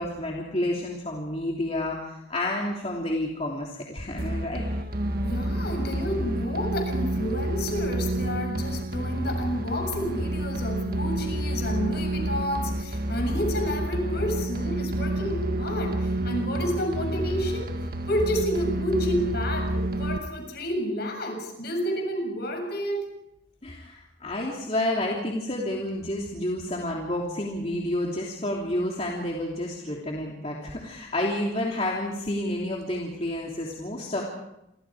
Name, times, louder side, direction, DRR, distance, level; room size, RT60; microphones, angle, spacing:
voice 1, 0.0-4.6 23.6-34.2, left 1 dB, 35° left, -2 dB, 3.2 m, -30 dB
sound 1, 4.2-20.2, right 1 dB, 50° right, 1.7 m, -29 dB
voice 2, 5.2-17.7 18.1-23.1, equal, 55° left, 4 dB, 7.3 m, -30 dB
29.0 x 24.5 x 5.0 m, 0.85 s
head